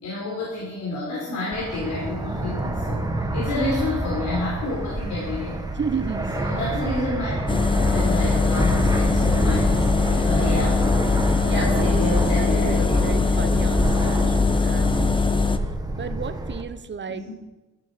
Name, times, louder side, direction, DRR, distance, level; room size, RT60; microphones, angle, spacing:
voice 1, 0.0-3.1 3.3-5.6 6.3-7.3 7.9-10.8 11.5-13.0 17.1-17.3, left 2 dB, 75° left, -5 dB, 4.2 m, -29 dB
Fixed-wing aircraft airplane, 1.5-16.6, right 1 dB, 10° right, 1.7 m, -28 dB
voice 2, 5.7-6.3 11.5-12.0 12.4-15.6 16.0-17.2, right 6 dB, 35° right, 10 dB, 1.1 m, -32 dB
sound 1, 7.5-15.6, left 4 dB, 15° left, 0.9 m, -21 dB
13.0 x 12.5 x 5.2 m, 1.1 s
cardioid pair, 90°, 30 cm